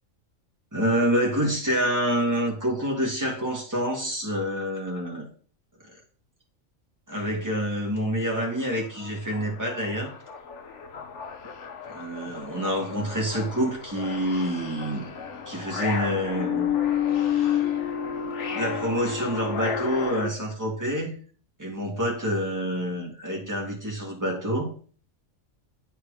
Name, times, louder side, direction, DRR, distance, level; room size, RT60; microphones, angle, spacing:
voice 1, 0.7-5.3 7.1-10.1 11.9-15.1 15.5-16.8 17.1-17.7 18.5-21.1 21.6-24.7, equal, 15° right, -2 dB, 2.1 m, -27 dB
sound 1, 8.7-20.3, left 8 dB, 60° left, 1.3 m, -31 dB
8.9 x 4.6 x 5.0 m, 0.43 s
omnidirectional pair, 1.4 m